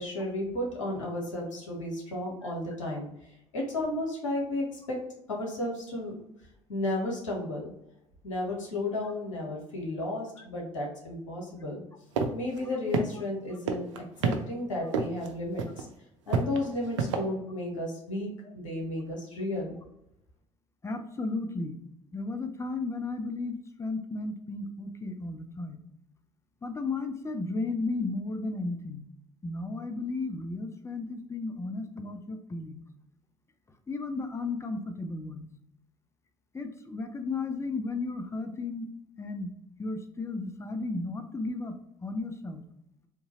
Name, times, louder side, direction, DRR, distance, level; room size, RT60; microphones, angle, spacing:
voice 1, 0.0-3.1 3.5-5.0 5.3-6.1 6.7-7.7 8.2-11.8 12.3-13.9 14.2-15.9 16.3-19.8, left 1 dB, 80° left, -1 dB, 1.0 m, -33 dB
sound 1, 12.2-12.3 12.6-12.7 12.9-13.4 13.7-14.4 14.9-15.3 15.6-15.8 16.3-17.2, right 5 dB, 75° right, 0.5 m, -27 dB
voice 2, 20.8-21.8 22.1-25.8 26.6-29.0 29.4-32.8 33.9-35.5 36.5-38.9 39.2-39.5 39.8-41.8 42.0-42.6, left 3 dB, 15° left, 6 dB, 0.6 m, -34 dB
3.7 x 2.7 x 2.9 m, 0.81 s
figure-of-eight pair, 60°, 16 cm